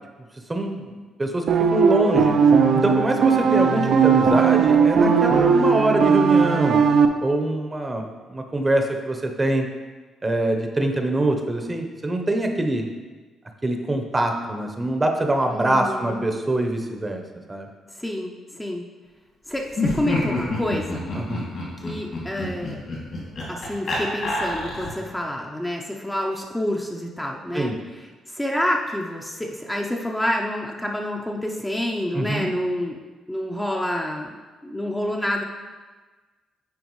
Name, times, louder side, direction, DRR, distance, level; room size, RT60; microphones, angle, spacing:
voice 1, 0.5-0.8 1.2-2.3 2.8-6.8 7.2-9.7 10.2-12.9 13.6-17.2 17.5-17.7 21.2-21.5 27.5-27.7 32.1-32.5, right 1 dB, 20° right, 4 dB, 0.8 m, -24 dB
sound 1, 1.5-7.1, right 6 dB, 60° right, 0.5 m, -18 dB
voice 2, 15.5-16.2 18.0-18.8 19.5-21.0 21.8-22.8 23.5-28.0 28.3-33.0 33.3-34.4 34.6-35.4, left 1 dB, 10° left, -1 dB, 0.6 m, -28 dB
Laughter, 19.7-25.1, left 2 dB, 60° left, 2.1 m, -28 dB
9.4 x 4.4 x 3.1 m, 1.3 s
cardioid pair, 90°, 0 cm